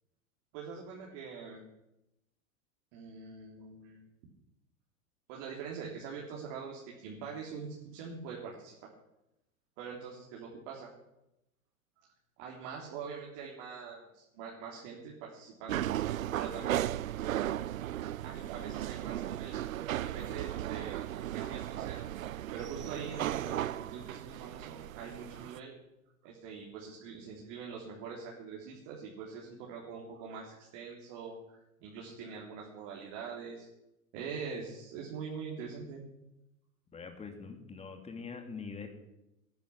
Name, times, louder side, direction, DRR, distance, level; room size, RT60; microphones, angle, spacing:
voice 1, 0.5-1.7 2.9-4.1 5.3-8.9 9.8-10.9 12.4-15.9 16.3-16.8 18.2-19.5 20.0-22.0 22.5-25.7 26.2-33.7 34.1-36.1, right 6 dB, 50° right, -2 dB, 3.6 m, -44 dB
sound 1, 15.7-25.6, right 12 dB, 75° right, 0.6 m, -36 dB
voice 2, 36.9-38.9, left 5 dB, 15° left, 5 dB, 2.6 m, -43 dB
19.0 x 10.5 x 6.1 m, 0.89 s
figure-of-eight pair, 95°, 42 cm